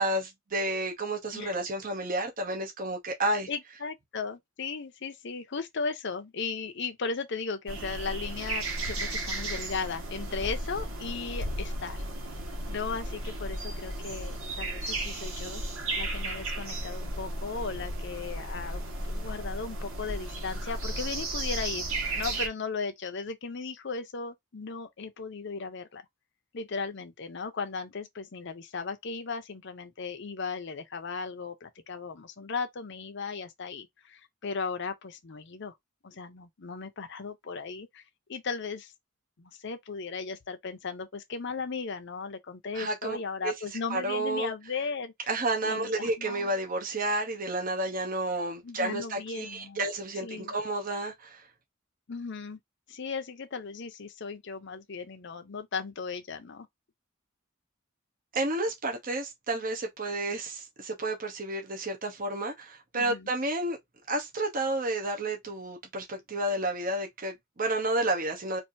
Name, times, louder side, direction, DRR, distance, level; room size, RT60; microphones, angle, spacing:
voice 1, 0.0-3.5 42.7-43.2 43.4-43.5 43.9-44.5 45.3-51.4 58.3-63.8 64.1-68.6, right 2 dB, 40° right, 0.9 m, -31 dB
voice 2, 3.5-12.0 12.7-15.6 15.9-21.9 22.2-26.0 26.5-35.7 36.0-38.0 38.3-38.9 39.4-45.3 45.6-46.5 48.6-49.9 50.2-50.5 52.1-52.6 52.9-56.7 62.9-63.3, left 4 dB, 60° left, 0.7 m, -36 dB
sound 1, 7.7-22.5, right 1 dB, 90° right, 1.5 m, -34 dB
4.4 x 2.6 x 2.6 m
head